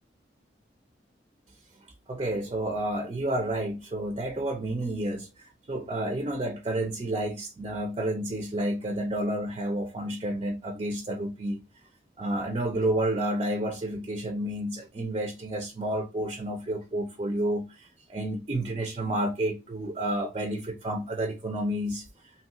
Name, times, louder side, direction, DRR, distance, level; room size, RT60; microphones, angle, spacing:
voice 1, 2.1-11.6 12.2-22.3, right 1 dB, 30° right, 0.4 m, -30 dB
2.8 x 2.3 x 2.8 m
head